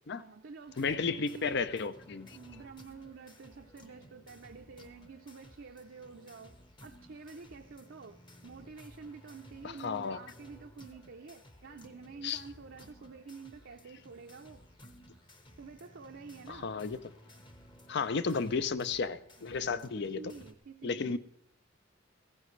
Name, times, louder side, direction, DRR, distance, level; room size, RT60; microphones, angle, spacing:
voice 1, 0.2-1.7 2.3-6.6 6.8-14.6 15.6-16.7 18.3-18.6 19.4-21.2, right 4 dB, 65° right, 0.5 m, -49 dB
sound 1, 0.7-20.5, equal, 25° left, 1.0 m, -56 dB
voice 2, 0.8-2.4 9.6-10.2 12.2-12.4 16.5-17.0 17.9-20.2 20.8-21.2, left 5 dB, 55° left, 0.5 m, -33 dB
15.5 x 15.0 x 3.2 m
head